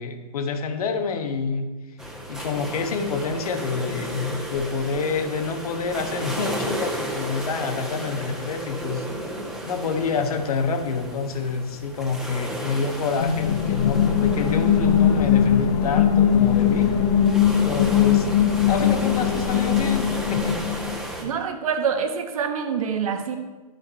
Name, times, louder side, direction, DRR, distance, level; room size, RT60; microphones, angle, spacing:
voice 1, 0.0-1.7 2.3-9.1 9.6-16.9 17.6-18.3 18.7-20.6, left 5 dB, 65° left, 6 dB, 1.2 m, -27 dB
sound 1, 2.0-21.2, right 1 dB, 5° right, 1.5 m, -34 dB
sound 2, 13.2-21.0, left 9 dB, 45° left, 0.9 m, -20 dB
voice 2, 21.2-23.4, right 7 dB, 60° right, 6 dB, 1.2 m, -26 dB
12.0 x 5.3 x 4.4 m, 1.2 s
hypercardioid pair, 120°, 21 cm